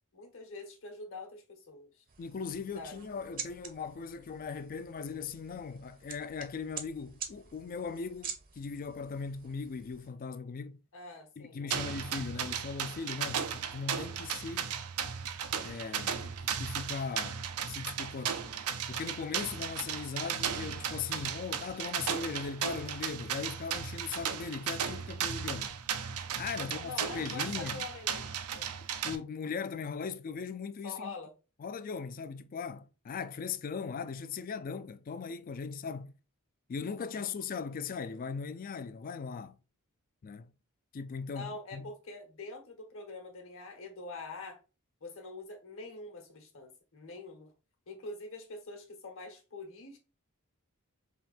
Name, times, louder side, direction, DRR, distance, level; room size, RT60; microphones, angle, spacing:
voice 1, 0.1-2.0 2.7-3.0 10.9-11.9 13.3-13.4 26.6-28.2 28.5-28.7 30.8-31.3 35.6-35.7 37.0-37.2 41.3-44.6 45.0-47.5 47.9-50.0, left 3 dB, 65° left, 1.2 m, -45 dB
sound 1, 2.1-10.1, right 7 dB, 40° right, 0.7 m, -47 dB
voice 2, 2.2-10.8 11.4-13.5 13.7-14.7 15.6-18.4 18.9-25.7 26.3-27.9 29.0-31.1 31.6-36.1 36.7-39.6 40.2-40.5 40.9-41.9, left 5 dB, 40° left, 0.3 m, -39 dB
sound 2, 11.7-29.2, right 7 dB, 85° right, 0.5 m, -36 dB
3.6 x 2.7 x 4.1 m
head